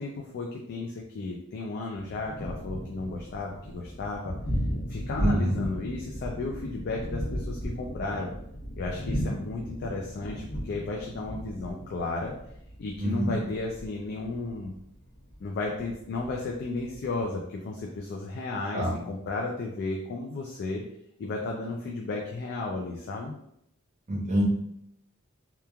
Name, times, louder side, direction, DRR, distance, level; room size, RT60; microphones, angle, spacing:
voice 1, 0.0-4.4 4.9-8.3 8.8-12.3 12.8-14.7 15.4-20.8 21.2-23.3, left 3 dB, 50° left, 0 dB, 0.3 m, -34 dB
Thunder, 1.9-17.2, equal, 75° left, 0.9 m, -36 dB
voice 2, 5.2-5.6 13.0-13.4 18.7-18.9 24.1-24.4, equal, 35° right, -2 dB, 0.6 m, -26 dB
3.0 x 2.3 x 2.2 m, 0.75 s
head